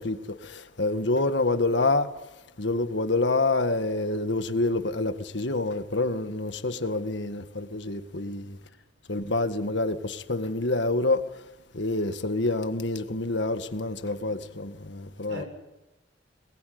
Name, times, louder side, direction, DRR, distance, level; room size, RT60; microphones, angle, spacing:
voice 1, 0.0-2.1 2.6-8.6 9.1-11.2 11.7-15.4, left 2 dB, 70° left, 1.8 m, -27 dB
voice 2, 8.2-8.8 15.0-15.5, equal, 75° right, 7.1 m, -44 dB
22.5 x 21.5 x 9.5 m
head